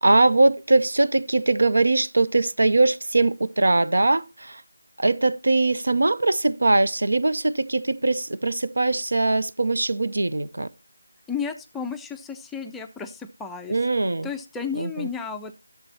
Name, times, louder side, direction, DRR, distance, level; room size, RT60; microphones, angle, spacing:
voice 1, 0.0-4.6 5.0-10.7 13.7-14.3 14.8-15.1, right 2 dB, 70° right, 0.6 m, -21 dB
voice 2, 11.3-13.8 14.2-15.6, left 6 dB, 5° left, 0.4 m, -33 dB
12.0 x 6.9 x 4.2 m
figure-of-eight pair, 165°, 0 cm